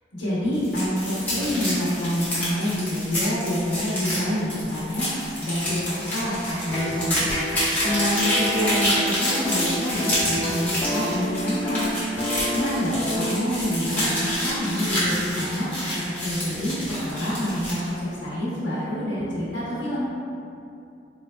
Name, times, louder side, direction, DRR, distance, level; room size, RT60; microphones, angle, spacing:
voice 1, 0.1-7.3 7.8-11.9 12.5-20.1, equal, 80° left, -8 dB, 0.9 m, -27 dB
sound 1, 0.5-17.9, left 1 dB, 10° left, 1.0 m, -28 dB
sound 2, 6.7-15.3, equal, 30° left, 0.4 m, -30 dB
3.9 x 3.1 x 2.2 m, 2.6 s
head